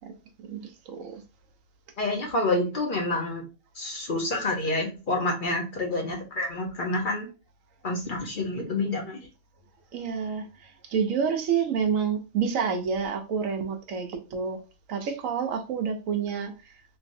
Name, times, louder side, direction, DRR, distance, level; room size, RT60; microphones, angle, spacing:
voice 1, 0.4-1.2 9.9-14.6 14.9-16.5, right 6 dB, 80° right, 1.1 m, -28 dB
voice 2, 2.0-3.4 3.7-7.3 7.8-9.3, left 2 dB, 45° left, 0.9 m, -28 dB
3.3 x 3.1 x 2.6 m
omnidirectional pair, 1.4 m